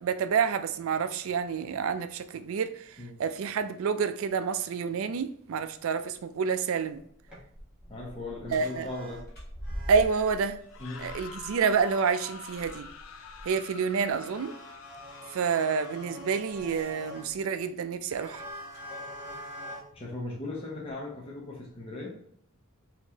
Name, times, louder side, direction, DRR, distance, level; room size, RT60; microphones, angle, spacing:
voice 1, 0.0-7.0 8.5-8.9 9.9-10.6 11.0-12.9 13.4-14.5 15.3-18.5, right 6 dB, 65° right, 0.3 m, -28 dB
sound 1, 7.0-7.4 7.8-7.9 8.5-9.2 9.6-10.5 11.7-12.8 13.5-13.6 14.0-17.5 18.1-19.8, equal, 5° right, 1.2 m, -45 dB
sound 2, 7.2-13.5 13.9-14.1 16.5-19.0 19.9-20.0 20.9-21.0, equal, 45° left, 1.2 m, -45 dB
voice 2, 7.9-9.2 10.8-11.2 19.9-22.2, left 2 dB, 25° left, 0.7 m, -38 dB
sound 3, 10.6-16.4, left 5 dB, 70° left, 0.4 m, -47 dB
4.4 x 2.8 x 2.8 m
head